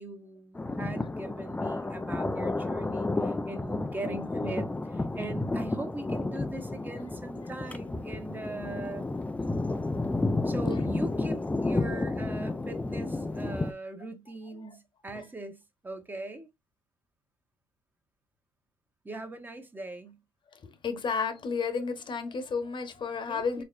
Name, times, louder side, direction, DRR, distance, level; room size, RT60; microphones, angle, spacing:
voice 1, 0.0-9.1 10.4-16.5 19.0-20.2 23.3-23.6, right 2 dB, 15° right, 1.2 m, -41 dB
Thunder, 0.5-13.7, left 2 dB, 10° left, 0.5 m, -31 dB
voice 2, 20.8-23.6, left 5 dB, 45° left, 1.1 m, -32 dB
4.7 x 3.1 x 2.5 m
cardioid pair, 85°, 11 cm